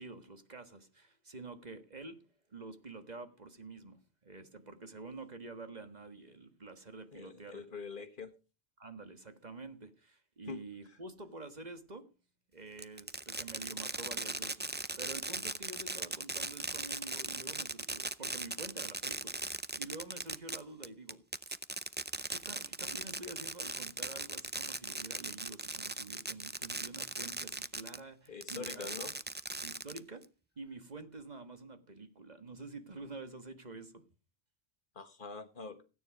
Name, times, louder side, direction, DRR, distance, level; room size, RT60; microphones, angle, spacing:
voice 1, 0.0-7.7 8.8-12.1 12.5-21.5 22.3-28.9 29.6-30.2 30.5-34.0, right 3 dB, 40° right, 1.6 m, -48 dB
voice 2, 7.1-8.3 10.5-10.6 28.3-29.1 34.9-35.8, left 5 dB, 55° left, 1.5 m, -44 dB
Fireworks, 12.8-28.0 28.4-30.2, right 2 dB, 15° right, 0.4 m, -39 dB
16.5 x 9.5 x 5.1 m
omnidirectional pair, 1.1 m